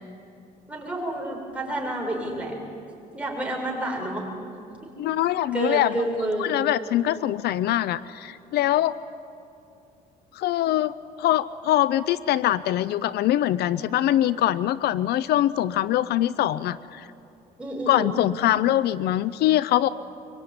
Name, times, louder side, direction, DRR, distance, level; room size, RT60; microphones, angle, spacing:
voice 1, 0.7-2.6 3.1-4.3 4.8-4.9 5.5-6.5 17.6-18.1, right 1 dB, 5° right, -1 dB, 7.2 m, -29 dB
voice 2, 5.0-5.9 6.4-8.9 10.3-17.1 17.9-19.9, left 13 dB, 70° left, 17 dB, 0.6 m, -23 dB
24.5 x 24.0 x 9.7 m, 2.6 s
cardioid pair, 110°, 17 cm